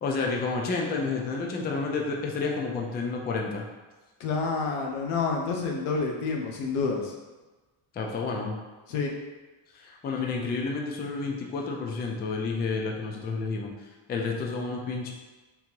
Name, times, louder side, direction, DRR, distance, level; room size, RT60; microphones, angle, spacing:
voice 1, 0.0-3.6 7.9-8.6 9.7-13.7 14.1-15.1, left 4 dB, 20° left, 0 dB, 0.4 m, -30 dB
voice 2, 4.2-7.1 8.9-9.1, left 4 dB, 90° left, 1 dB, 0.9 m, -28 dB
3.7 x 2.7 x 4.5 m, 1.2 s
cardioid pair, 140°, 49 cm